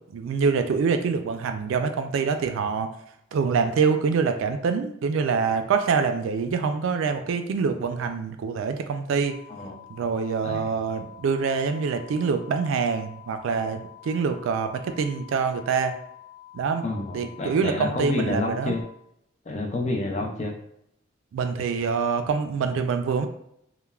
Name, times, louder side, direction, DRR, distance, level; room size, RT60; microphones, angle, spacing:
voice 1, 0.1-2.9 3.3-9.4 9.9-16.0 16.5-16.8 17.1-18.7 21.3-23.3, right 5 dB, 75° right, 7 dB, 0.3 m, -25 dB
sound 1, 9.2-18.8, left 13 dB, 60° left, 1.1 m, -48 dB
voice 2, 16.8-18.8 19.5-20.5, left 2 dB, 35° left, 2 dB, 0.4 m, -29 dB
3.1 x 2.1 x 2.3 m, 0.74 s
head